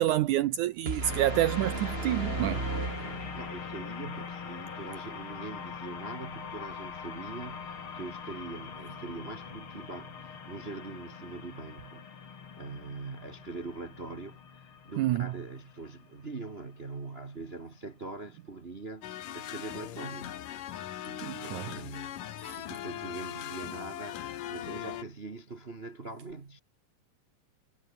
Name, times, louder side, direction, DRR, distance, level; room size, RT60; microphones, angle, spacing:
voice 1, 0.0-2.6 15.0-15.3 21.2-21.7 22.4-22.5, right 14 dB, 75° right, 2.2 m, -28 dB
sound 1, 0.9-3.8, right 3 dB, 20° right, 2.4 m, -35 dB
sound 2, 1.0-17.6, left 6 dB, 45° left, 3.1 m, -43 dB
voice 2, 3.3-12.1 12.6-20.4 21.1-22.3 22.6-26.6, right 3 dB, 45° right, 0.7 m, -43 dB
sound 3, 19.0-25.0, left 12 dB, 80° left, 3.1 m, -40 dB
omnidirectional pair, 3.8 m